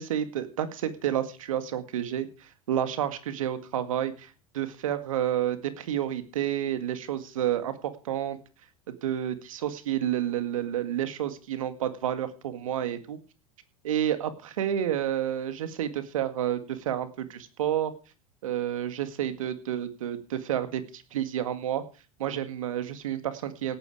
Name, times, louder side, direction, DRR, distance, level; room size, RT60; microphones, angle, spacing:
voice 1, 0.0-2.3 2.7-7.8 8.1-8.4 8.9-13.2 13.8-17.9 18.4-21.8 22.2-23.7, right 11 dB, 75° right, 11 dB, 1.9 m, -30 dB
17.5 x 9.4 x 4.9 m, 0.34 s
hypercardioid pair, 80°, 18 cm